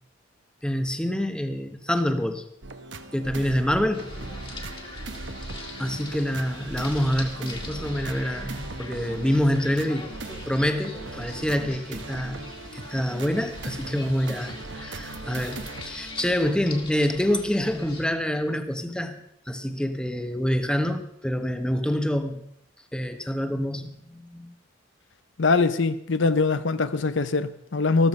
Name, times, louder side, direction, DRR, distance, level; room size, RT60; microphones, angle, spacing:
voice 1, 0.6-2.4 3.1-4.1 5.8-10.1 10.5-12.4 12.7-22.4 22.9-24.5, equal, 5° left, 1.1 m, -26 dB
sound 1, 2.6-17.1 17.6-17.8, right 2 dB, 65° right, 1.1 m, -39 dB
sound 2, 3.9-18.1, left 2 dB, 25° left, 2.0 m, -42 dB
voice 2, 25.4-28.1, left 3 dB, 65° left, 0.7 m, -22 dB
14.0 x 13.5 x 5.4 m
head